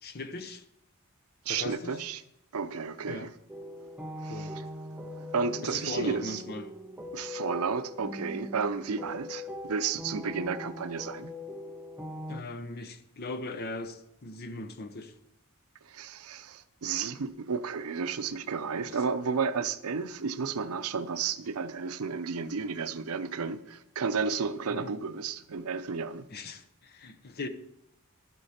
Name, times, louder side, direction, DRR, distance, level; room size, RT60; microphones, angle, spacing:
voice 1, 0.0-0.6 1.5-2.0 3.1-3.3 4.3-4.5 5.6-6.7 12.3-15.1 18.9-19.0 24.7-24.9 26.3-27.5, left 2 dB, 45° left, 0.8 m, -39 dB
voice 2, 1.4-2.2 2.5-3.3 4.2-4.6 5.2-6.4 7.1-11.3 15.8-26.3, right 5 dB, 85° right, 0.6 m, -32 dB
sound 1, 3.5-12.4, left 1 dB, 5° right, 0.7 m, -41 dB
12.0 x 8.2 x 4.3 m
head